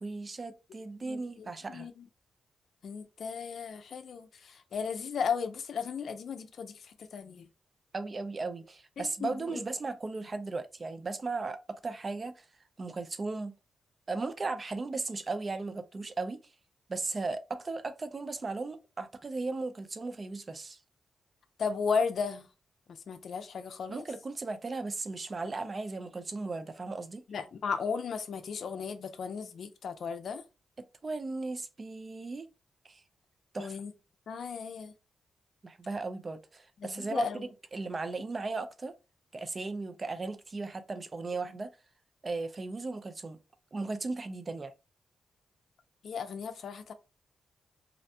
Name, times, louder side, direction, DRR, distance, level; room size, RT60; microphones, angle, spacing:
voice 1, 0.0-1.9 7.9-12.5 12.8-13.5 14.1-16.4 16.9-20.8 23.9-27.2 30.8-32.5 32.8-33.0 33.5-33.8 35.6-38.9 39.3-41.7 42.2-43.4 43.7-44.7, right 3 dB, 40° right, 0.4 m, -36 dB
voice 2, 1.0-2.1 2.8-7.5 9.0-9.6 21.6-22.5 22.9-24.0 27.3-30.4 33.6-33.9 34.3-34.9 36.8-37.5 46.0-46.9, left 6 dB, 70° left, 0.4 m, -35 dB
2.5 x 2.1 x 2.7 m
cardioid pair, 75°, 0 cm